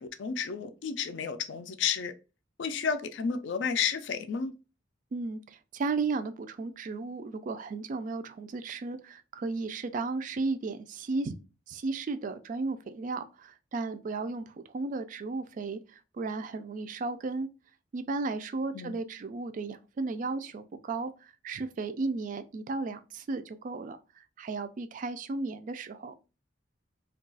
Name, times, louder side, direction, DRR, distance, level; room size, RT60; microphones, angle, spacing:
voice 1, 0.0-2.1 2.6-4.5 18.7-19.0, left 6 dB, 65° left, 0.4 m, -31 dB
voice 2, 5.1-11.3 11.7-17.5 17.9-26.1, right 3 dB, 40° right, 0.3 m, -34 dB
2.3 x 2.3 x 3.8 m
head